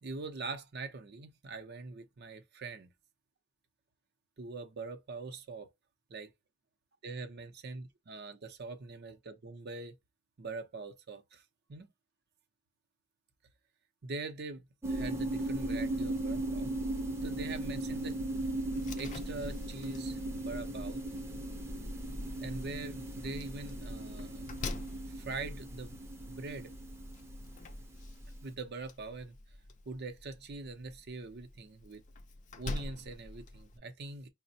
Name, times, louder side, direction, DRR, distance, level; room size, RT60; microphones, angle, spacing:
voice 1, 0.0-2.9 4.4-5.7 6.1-6.3 7.0-10.0 10.4-11.9 14.0-16.7 17.2-18.2 18.9-21.0 22.4-24.4 25.1-26.0 26.3-26.7 28.4-29.4 29.9-32.0 32.6-34.3, right 3 dB, 55° right, 0.6 m, -43 dB
sound 1, 14.8-28.2, right 1 dB, 15° right, 0.5 m, -37 dB
Slam, 18.7-33.8, left 2 dB, 40° left, 0.4 m, -47 dB
4.8 x 2.1 x 2.7 m
head